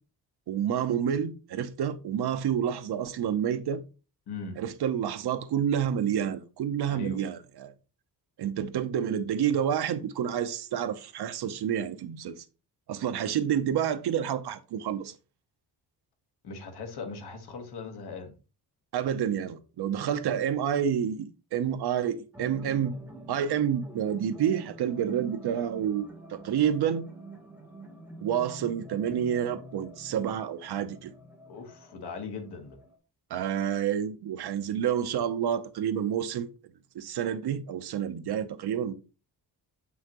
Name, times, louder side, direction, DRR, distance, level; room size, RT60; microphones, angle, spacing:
voice 1, 0.5-3.8 4.6-7.7 8.4-12.4 12.9-15.1 18.9-22.9 23.3-27.0 28.2-31.1 33.3-36.5 36.9-38.9, right 9 dB, 75° right, 0.8 m, -29 dB
voice 2, 4.3-4.6 6.9-7.2 16.4-18.4 31.5-32.8, left 4 dB, 75° left, 1.5 m, -39 dB
sound 1, 22.3-33.0, right 1 dB, 5° right, 1.2 m, -47 dB
6.6 x 5.7 x 3.0 m
wide cardioid pair, 170°, 40 cm